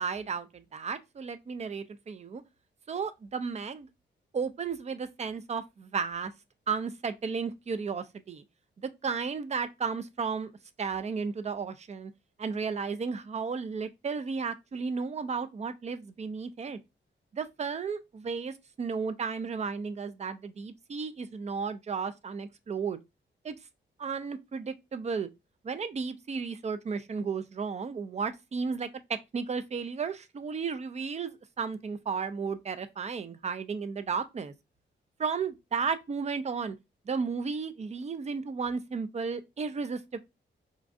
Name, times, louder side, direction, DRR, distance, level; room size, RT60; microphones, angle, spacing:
voice 1, 0.0-2.4 2.9-3.9 4.3-6.3 6.7-8.4 8.8-10.5 10.8-12.1 12.4-16.8 17.3-23.0 23.4-23.5 24.0-25.3 25.6-34.5 35.2-36.8 37.1-40.2, right 5 dB, 35° right, 0.4 m, -34 dB
5.0 x 2.3 x 2.6 m
wide cardioid pair, 110°, 20 cm